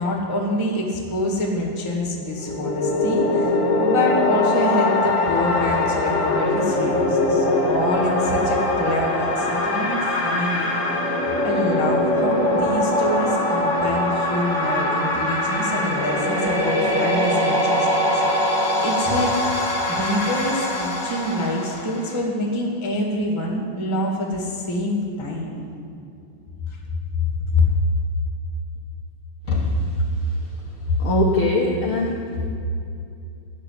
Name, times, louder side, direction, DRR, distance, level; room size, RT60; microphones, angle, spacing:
voice 1, 0.0-10.7 11.4-18.2 18.8-19.4 19.9-25.6 27.5-27.6, left 1 dB, 15° left, -2 dB, 1.1 m, -26 dB
sound 1, 2.3-22.2, left 1 dB, 35° left, 1.2 m, -22 dB
voice 2, 29.5-29.8 31.0-32.3, left 1 dB, 80° left, -2 dB, 1.2 m, -21 dB
13.0 x 6.9 x 9.7 m, 2.5 s
omnidirectional pair, 4.1 m